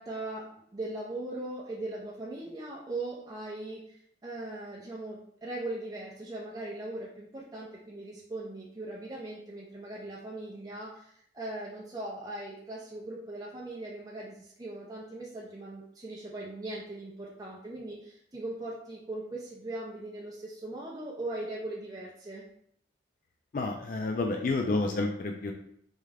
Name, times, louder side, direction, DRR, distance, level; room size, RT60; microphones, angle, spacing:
voice 1, 0.0-22.4, right 2 dB, 20° right, -5 dB, 0.5 m, -39 dB
voice 2, 23.5-25.5, left 3 dB, 45° left, 3 dB, 0.3 m, -29 dB
3.5 x 3.2 x 3.3 m, 0.67 s
head